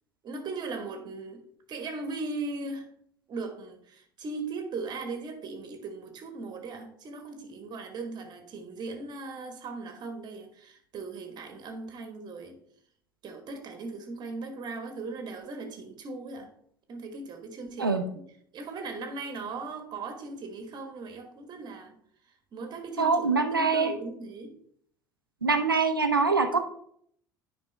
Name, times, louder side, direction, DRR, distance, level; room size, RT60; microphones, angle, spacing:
voice 1, 0.2-1.4 1.7-2.9 3.3-12.6 13.2-16.5 16.9-18.2 18.5-22.0 22.5-24.5, right 3 dB, 40° right, 6 dB, 1.5 m, -38 dB
voice 2, 23.0-23.9 25.4-26.6, right 4 dB, 85° right, 8 dB, 0.7 m, -24 dB
9.7 x 5.2 x 3.4 m, 0.65 s
figure-of-eight pair, 65°, 11 cm